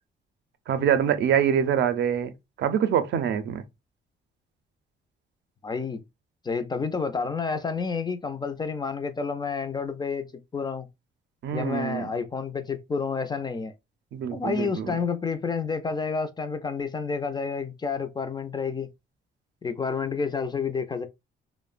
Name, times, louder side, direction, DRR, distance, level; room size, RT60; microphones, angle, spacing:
voice 1, 0.7-2.3 2.6-3.6 11.4-12.1 14.1-15.0, right 8 dB, 65° right, 0.5 m, -25 dB
voice 2, 5.6-6.0 6.4-10.3 10.5-10.9 11.5-13.7 14.3-18.9 19.6-21.1, left 5 dB, 20° left, 0.3 m, -29 dB
2.9 x 2.0 x 2.4 m
cardioid pair, 90°, 20 cm